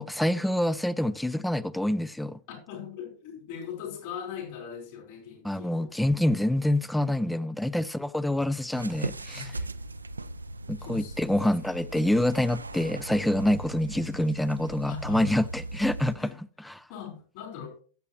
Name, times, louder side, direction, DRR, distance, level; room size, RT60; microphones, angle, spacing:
voice 1, 0.0-2.4 5.4-9.5 10.7-16.3 16.6-16.9, left 1 dB, 5° left, 0.3 m, -26 dB
voice 2, 2.5-5.9 7.2-7.5 9.3-9.5 10.8-11.5 14.9-15.3 16.2-16.4 16.9-17.8, left 8 dB, 50° left, 4.3 m, -40 dB
sound 1, 8.7-16.2, right 2 dB, 80° right, 0.4 m, -38 dB
15.0 x 7.6 x 3.1 m
figure-of-eight pair, 90°, 0 cm